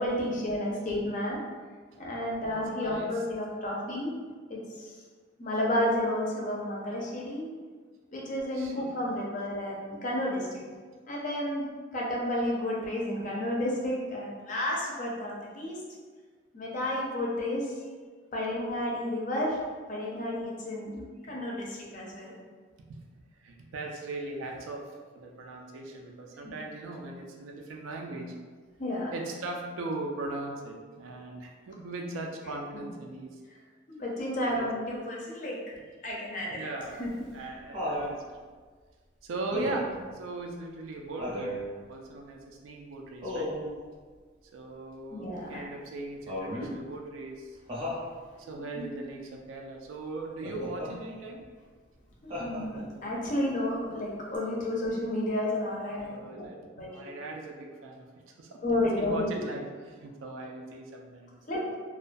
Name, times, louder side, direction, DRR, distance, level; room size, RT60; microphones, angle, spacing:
voice 1, 0.0-1.4 2.0-4.2 4.5-4.9 5.4-7.5 8.1-10.5 11.1-11.6 11.9-15.8 16.5-17.8 18.3-19.6 19.9-22.3 26.4-26.5 28.8-29.1 31.1-31.2 32.5-32.6 33.9-35.6 36.0-37.1 45.1-45.6 48.8-48.9 52.2-56.5 56.8-57.1 58.6-59.4 61.5-61.8, left 1 dB, 40° left, -3 dB, 0.5 m, -31 dB
voice 2, 2.5-3.1 8.5-8.9 22.9-23.0 23.4-28.3 29.1-33.4 34.4-34.7 36.5-38.2 39.2-41.6 41.9-43.5 44.5-47.6 48.4-51.4 56.0-56.6 56.9-58.6 59.0-61.6, right 2 dB, 85° right, 2 dB, 0.3 m, -39 dB
Laughter, 36.8-38.1 39.5-40.0 41.2-41.6 43.2-43.7 46.3-46.8 47.7-48.1 50.4-50.9 52.3-53.0 54.3-54.4, left 1 dB, 25° right, 0.6 m, -35 dB
2.3 x 2.2 x 2.5 m, 1.5 s
head